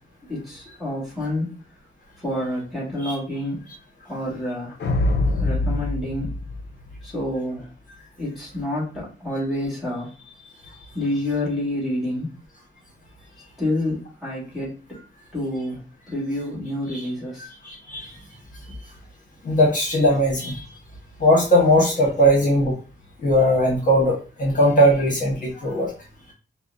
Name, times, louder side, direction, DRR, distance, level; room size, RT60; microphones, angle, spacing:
voice 1, 0.3-1.6 2.2-3.6 4.1-4.7 5.4-6.3 7.0-7.7 8.2-10.1 10.6-12.3 13.6-14.8 15.3-15.8 16.1-17.5, left 1 dB, ahead, -6 dB, 2.0 m, -28 dB
sound 1, 4.8-7.3, left 2 dB, 60° left, 0.7 m, -24 dB
voice 2, 17.6-18.1 19.4-20.6 21.2-22.7 23.2-25.9, equal, 40° left, -4 dB, 1.5 m, -19 dB
5.5 x 2.3 x 2.7 m, 0.34 s
wide cardioid pair, 145°, 20 cm